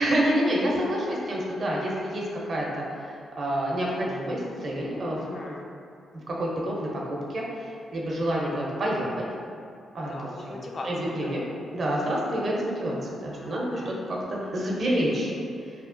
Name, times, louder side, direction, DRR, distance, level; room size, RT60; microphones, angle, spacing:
voice 1, 0.0-5.2 6.3-9.2 9.9-10.1 10.5-10.6 10.8-11.4 11.7-13.9 14.3-15.3, equal, 55° right, -3 dB, 0.6 m, -28 dB
voice 2, 4.9-5.7 9.9-11.4 13.3-14.0, left 2 dB, 50° left, 0 dB, 0.4 m, -39 dB
2.8 x 2.0 x 2.5 m, 2.4 s
supercardioid pair, 45°, 0 cm